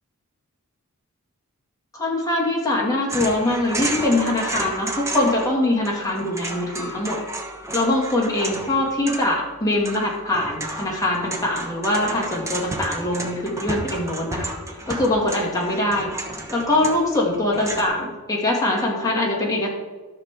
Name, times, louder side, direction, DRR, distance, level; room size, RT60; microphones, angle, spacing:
voice 1, 1.9-7.2 7.7-14.5 14.9-16.1 16.5-19.7, left 1 dB, 15° left, -3 dB, 2.3 m, -23 dB
sound 1, 3.1-5.6 5.8-17.9, right 1 dB, 15° right, 1.1 m, -32 dB
13.5 x 6.6 x 3.7 m, 1.3 s
head